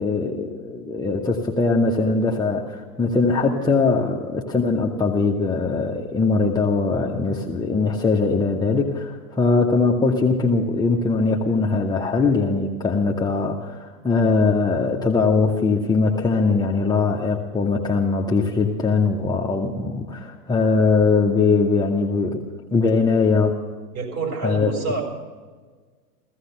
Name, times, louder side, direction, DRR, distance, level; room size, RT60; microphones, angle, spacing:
voice 1, 0.0-22.4 22.7-23.6 24.4-24.7, left 4 dB, 10° left, -2 dB, 1.2 m, -21 dB
voice 2, 23.9-25.0, right 3 dB, 35° right, 1 dB, 5.5 m, -27 dB
16.0 x 15.0 x 5.8 m, 1.5 s
hypercardioid pair, 105°, 46 cm